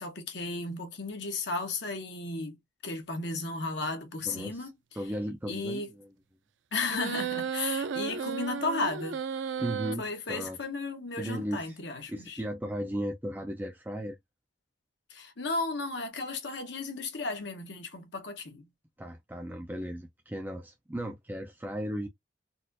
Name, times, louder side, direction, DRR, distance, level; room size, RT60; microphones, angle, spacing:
voice 1, 0.0-2.6 2.8-4.7 5.5-5.9 6.7-9.2 10.0-12.4 15.1-18.7, left 3 dB, 65° left, 1.0 m, -34 dB
voice 2, 4.3-4.7 5.0-6.1 9.6-10.6 11.2-14.2 19.0-22.1, equal, 10° right, 0.4 m, -36 dB
sound 1, 6.9-9.9, right 6 dB, 70° right, 0.4 m, -33 dB
4.1 x 2.4 x 2.5 m
head